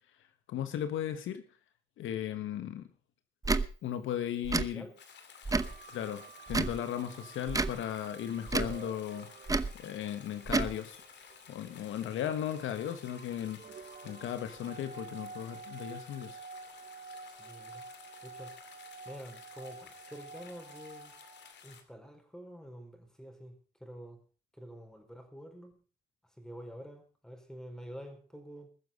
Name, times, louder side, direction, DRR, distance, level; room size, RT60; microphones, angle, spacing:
voice 1, 0.5-1.4 2.0-2.9 3.8-4.9 5.9-9.3 9.8-11.0 11.5-16.4, left 10 dB, 80° left, 10 dB, 1.4 m, -36 dB
Tick / Tick-tock, 3.4-3.7 4.4-4.7 5.4-5.8 6.5-6.8 7.5-7.8 8.5-8.8 9.5-9.7 10.5-10.7, right 3 dB, 15° right, 0.8 m, -29 dB
sound 1, 5.0-21.8, left 7 dB, 65° left, 2.4 m, -54 dB
sound 2, 5.5-21.5, right 4 dB, 45° right, 1.7 m, -51 dB
voice 2, 17.2-17.8 18.2-18.5 19.0-21.1 21.6-24.2 24.6-25.7 26.4-28.7, equal, 5° left, 5 dB, 4.5 m, -48 dB
21.5 x 7.1 x 5.3 m, 0.38 s
cardioid pair, 90°, 20 cm